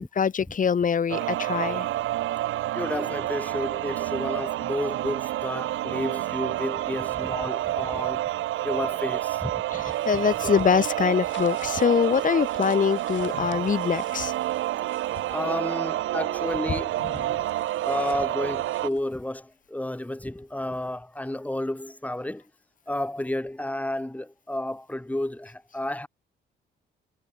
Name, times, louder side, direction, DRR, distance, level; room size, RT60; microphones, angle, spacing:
voice 1, 0.0-1.9 9.7-14.3, left 7 dB, 40° left, 1.7 m, -24 dB
sound 1, 1.1-18.9, right 15 dB, 80° right, 1.1 m, -29 dB
voice 2, 2.7-8.3 8.6-10.2 15.3-17.2 17.8-22.4 22.9-26.1, left 1 dB, 5° left, 4.2 m, -31 dB
sound 2, 9.7-15.4 16.8-19.1, left 10 dB, 70° left, 5.0 m, -48 dB
cardioid pair, 90°, 20 cm